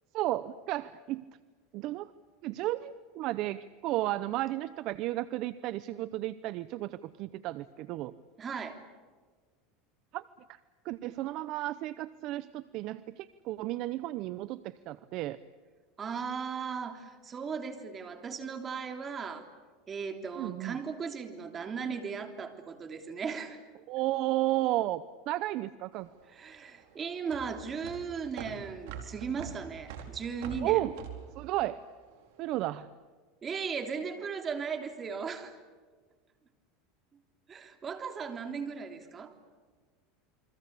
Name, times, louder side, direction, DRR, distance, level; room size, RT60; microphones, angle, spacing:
voice 1, 0.1-1.2 1.7-2.1 2.4-8.1 10.1-10.2 10.5-10.6 10.8-15.4 20.4-20.8 23.9-26.1 30.6-31.0 31.4-31.8 32.4-32.9, right 16 dB, 50° right, 15 dB, 0.8 m, -33 dB
voice 2, 8.4-8.8 16.0-19.5 19.9-23.6 26.3-30.9 33.4-35.6 37.5-39.3, right 6 dB, 25° right, 6 dB, 3.3 m, -37 dB
sound 1, 25.9-32.5, right 8 dB, 70° right, 4.7 m, -44 dB
29.0 x 23.5 x 8.4 m, 1.5 s
supercardioid pair, 130°, 0 cm